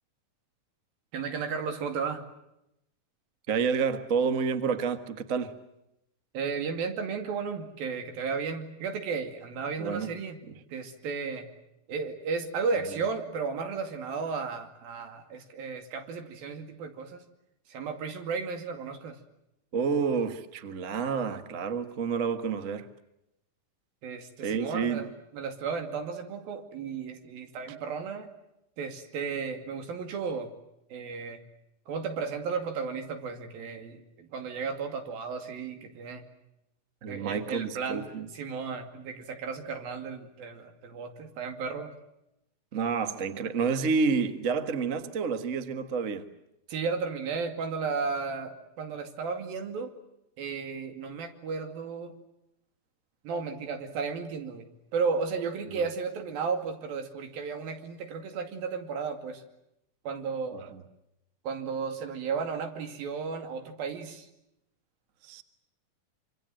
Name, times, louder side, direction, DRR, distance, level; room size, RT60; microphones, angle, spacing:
voice 1, 1.1-2.2 6.3-10.4 10.7-11.5 11.9-17.2 17.7-19.2 24.0-28.3 28.8-30.5 30.9-31.4 31.9-36.2 37.1-38.0 38.3-41.9 46.7-49.9 50.4-52.1 53.2-54.7 54.9-59.4 60.1-60.7 61.4-64.3, right 5 dB, 85° right, 4.3 m, -34 dB
voice 2, 3.5-5.5 9.8-10.1 19.7-22.9 24.4-25.1 37.0-38.3 42.7-46.2 60.5-60.8 65.2-65.4, right 5 dB, 50° right, 0.9 m, -29 dB
26.5 x 25.5 x 7.7 m
omnidirectional pair, 4.1 m